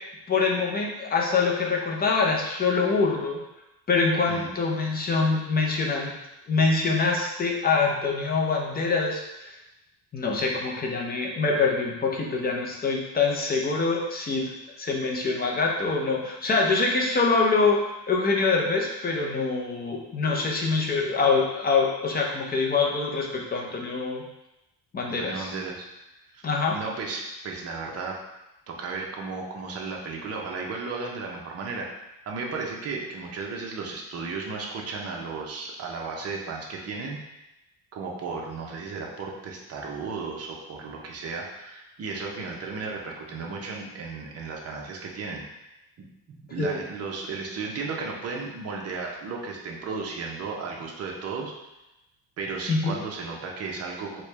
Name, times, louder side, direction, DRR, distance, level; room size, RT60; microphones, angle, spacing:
voice 1, 0.3-3.4 3.9-6.1 6.5-9.5 10.1-14.5 14.8-24.2 24.9-25.5 26.4-26.8 46.6-46.8 52.7-52.9, left 4 dB, 25° left, 0 dB, 0.5 m, -25 dB
voice 2, 25.2-25.9 26.3-26.4 26.7-28.2 28.7-31.9 32.3-37.2 37.9-45.4 46.0-51.5 52.4-54.2, right 4 dB, 40° right, -1 dB, 0.7 m, -34 dB
4.3 x 2.2 x 3.2 m, 0.95 s
cardioid pair, 140°, 38 cm